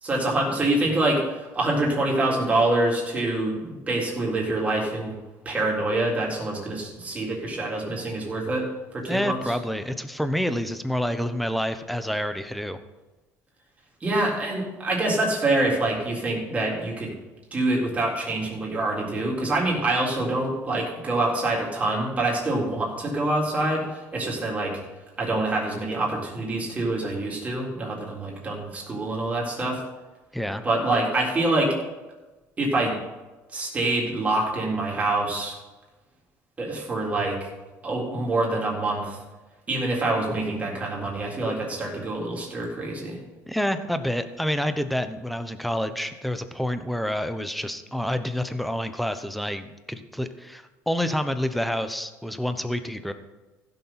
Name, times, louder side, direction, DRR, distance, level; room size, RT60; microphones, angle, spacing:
voice 1, 0.0-5.1 5.5-8.7 8.9-9.5 14.0-17.1 17.5-24.8 25.2-29.8 30.6-31.8 32.6-32.9 33.5-35.6 36.6-37.4 37.8-39.2 39.7-43.2, right 2 dB, 25° right, -2 dB, 3.8 m, -26 dB
voice 2, 9.1-12.8 30.3-30.7 43.5-53.1, equal, ahead, 10 dB, 0.9 m, -28 dB
15.5 x 7.0 x 5.9 m, 1.2 s
cardioid pair, 125°, 6 cm